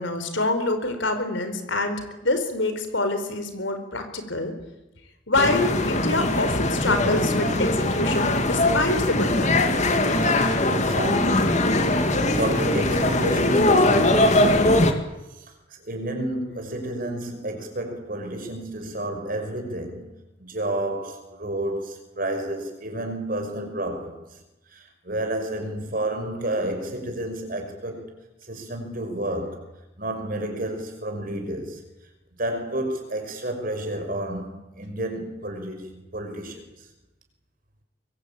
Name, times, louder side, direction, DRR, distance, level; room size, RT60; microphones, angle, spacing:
voice 1, 0.0-4.5 5.3-9.7, left 2 dB, 65° left, 4.4 m, -26 dB
sound 1, 5.3-14.9, left 1 dB, 35° left, 2.3 m, -21 dB
voice 2, 10.6-15.0 15.3-20.1 20.4-24.2 24.7-28.1 28.5-29.6 30.0-31.8 32.4-36.9, right 1 dB, 45° right, 5.6 m, -31 dB
24.5 x 23.0 x 8.8 m
head